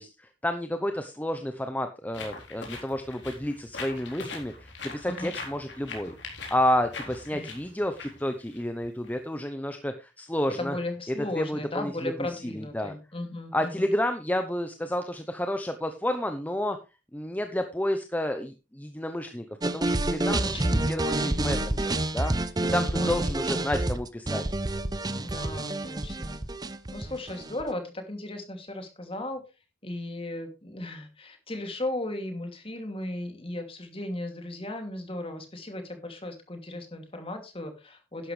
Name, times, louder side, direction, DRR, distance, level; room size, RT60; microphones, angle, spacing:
voice 1, 0.0-6.1 6.5-10.8 11.1-12.9 13.5-16.8 17.1-19.5 19.7-22.3 22.6-24.4, left 1 dB, 10° left, 7 dB, 0.8 m, -30 dB
sound 1, 2.1-9.1, left 4 dB, 65° left, 4.0 m, -41 dB
voice 2, 10.6-13.9 20.3-21.5 22.7-23.7 25.2-26.4 26.9-29.4 29.8-38.3, left 1 dB, 30° left, 5 dB, 2.7 m, -36 dB
sound 2, 19.6-27.7, right 2 dB, 20° right, 0.7 m, -28 dB
11.5 x 11.0 x 3.3 m, 0.29 s
head